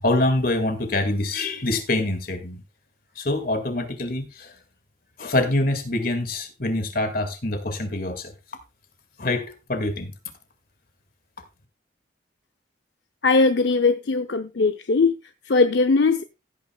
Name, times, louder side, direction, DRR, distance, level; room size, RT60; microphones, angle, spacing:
voice 1, 0.0-2.6 3.2-4.5 5.2-8.3 9.2-10.1, left 2 dB, 50° left, 2.0 m, -25 dB
voice 2, 13.2-15.2 15.4-16.2, left 3 dB, 70° left, 0.6 m, -20 dB
16.0 x 9.0 x 2.3 m
head